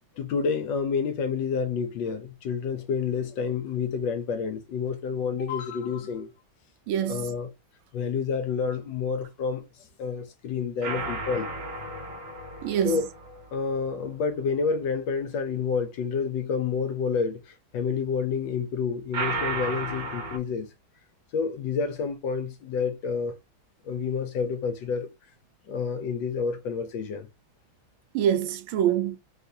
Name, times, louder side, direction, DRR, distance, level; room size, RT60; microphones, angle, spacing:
voice 1, 0.2-6.3 7.1-7.5 7.9-11.5 12.8-13.1 13.5-20.7 21.3-23.3 23.8-25.1 25.7-27.3, left 5 dB, 75° left, 1.2 m, -29 dB
voice 2, 6.9-7.3 12.6-13.0 28.1-29.2, right 10 dB, 75° right, 1.4 m, -25 dB
sound 1, 10.8-14.2 19.1-20.4, right 3 dB, 45° right, 0.8 m, -34 dB
3.6 x 2.4 x 2.6 m
omnidirectional pair, 2.3 m